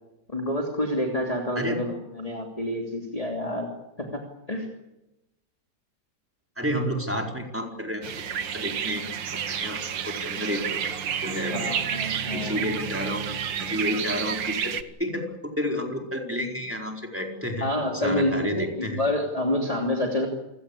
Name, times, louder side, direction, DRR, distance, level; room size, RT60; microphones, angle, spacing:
voice 1, 0.3-3.7 4.0-4.2 4.5-4.7 11.4-12.7 17.6-20.3, left 1 dB, 20° left, 1 dB, 3.1 m, -28 dB
voice 2, 6.6-8.2 8.5-9.1 9.3-10.8 11.2-11.7 12.3-17.6 17.9-19.0, equal, 5° right, 1 dB, 4.5 m, -30 dB
sound 1, 8.0-14.8, right 8 dB, 85° right, 2.0 m, -30 dB
28.0 x 18.0 x 8.5 m, 0.96 s
omnidirectional pair, 2.0 m